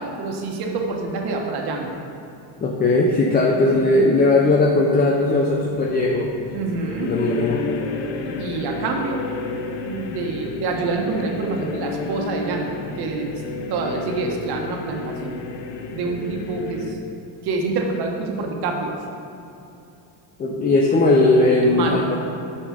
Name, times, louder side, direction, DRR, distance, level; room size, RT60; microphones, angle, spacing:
voice 1, 0.0-2.0 3.7-3.9 6.5-7.2 8.2-9.3 9.8-15.4 15.9-17.0 17.4-19.0 21.6-22.1, right 3 dB, 55° right, 1 dB, 1.5 m, -27 dB
voice 2, 2.6-6.3 7.0-7.6 20.4-22.2, left 2 dB, 20° left, -2 dB, 0.6 m, -18 dB
sound 1, 5.5-16.9, left 4 dB, 65° left, 1.0 m, -32 dB
8.4 x 5.3 x 6.5 m, 2.9 s
cardioid pair, 140°, 45 cm